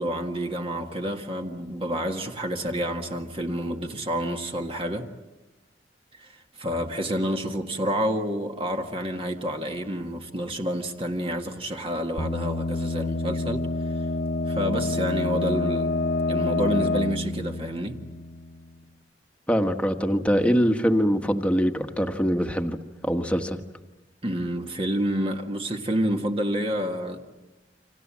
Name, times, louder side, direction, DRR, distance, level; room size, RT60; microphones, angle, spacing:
voice 1, 0.0-5.1 6.2-14.1 14.5-15.9 16.3-18.0 24.2-27.2, equal, 30° right, 1.8 m, -29 dB
sound 1, 12.2-18.8, left 2 dB, 55° left, 1.4 m, -27 dB
voice 2, 19.5-22.8 23.0-23.6, equal, 5° left, 1.5 m, -23 dB
29.5 x 26.0 x 7.6 m
head